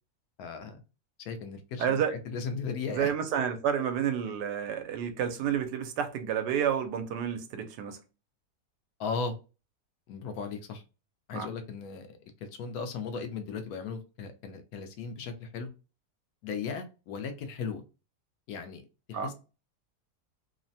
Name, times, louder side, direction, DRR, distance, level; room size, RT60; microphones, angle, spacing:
voice 1, 0.4-0.8 1.2-3.1 9.0-9.3 10.1-10.8 11.3-12.1 12.4-15.7 16.4-17.8 18.5-18.8 19.1-19.3, left 5 dB, 70° left, 1.0 m, -36 dB
voice 2, 1.8-2.1 2.9-8.0 11.3-11.5 19.1-19.3, right 8 dB, 85° right, 1.2 m, -30 dB
3.1 x 2.1 x 2.6 m
omnidirectional pair, 1.8 m